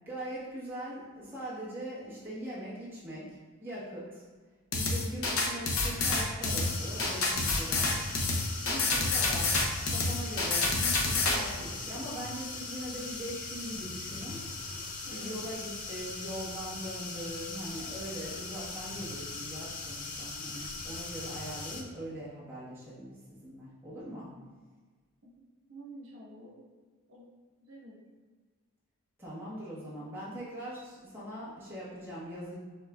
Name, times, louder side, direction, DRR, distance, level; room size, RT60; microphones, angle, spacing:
voice 1, 0.1-4.2 4.7-8.0 8.7-14.4 15.0-24.3 29.2-32.5, right 1 dB, 10° right, -10 dB, 1.1 m, -41 dB
sound 1, 4.7-11.4, left 3 dB, 75° left, 0.7 m, -28 dB
sound 2, 6.4-21.8, left 3 dB, 35° left, 0.4 m, -40 dB
voice 2, 8.6-8.9 15.0-15.5 24.4-24.5 25.2-26.6 27.1-27.3 27.7-28.0, equal, 65° right, -5 dB, 1.2 m, -49 dB
6.4 x 3.6 x 2.3 m, 1.4 s
head